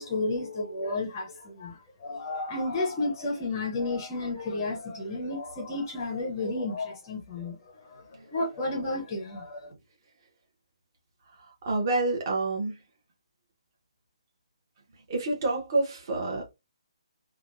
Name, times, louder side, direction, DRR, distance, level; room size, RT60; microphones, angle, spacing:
voice 1, 0.0-7.6 8.3-9.7, left 2 dB, 15° left, 0.6 m, -32 dB
voice 2, 11.7-12.7 15.1-16.5, right 2 dB, 35° right, 0.9 m, -27 dB
3.4 x 2.2 x 2.4 m
hypercardioid pair, 170°, 4 cm